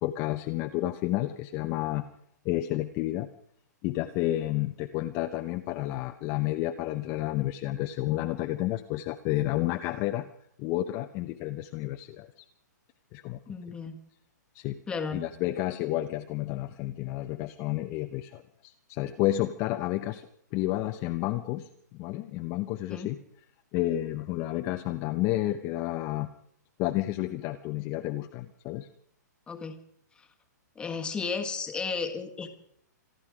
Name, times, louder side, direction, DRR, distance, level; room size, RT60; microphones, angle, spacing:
voice 1, 0.0-2.0 2.4-3.3 3.8-10.3 10.6-12.3 13.1-13.4 14.5-14.8 15.1-20.2 20.5-21.7 21.9-23.2 23.7-26.3 26.8-28.9, left 15 dB, 25° left, 6 dB, 0.7 m, -30 dB
voice 2, 13.5-14.0 14.9-15.2 22.9-23.1 29.5-29.8 30.2-30.3 30.7-32.5, left 5 dB, 10° left, 6 dB, 1.5 m, -33 dB
26.5 x 11.0 x 4.9 m, 0.67 s
hypercardioid pair, 155°, 10 cm